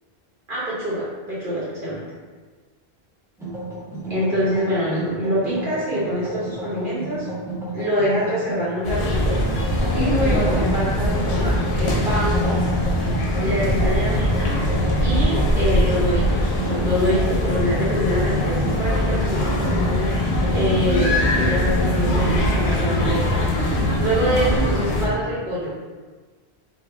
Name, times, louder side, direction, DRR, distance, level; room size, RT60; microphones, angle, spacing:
voice 1, 0.5-2.0 4.1-7.3 7.7-9.5 9.9-12.6 13.4-14.6 15.0-23.5 24.0-25.8, equal, 55° right, -8 dB, 1.0 m, -25 dB
sound 1, 3.4-20.9, right 2 dB, 5° right, 0.8 m, -33 dB
sound 2, 8.8-25.1, left 1 dB, 75° left, 0.9 m, -21 dB
3.5 x 2.3 x 3.4 m, 1.4 s
omnidirectional pair, 1.1 m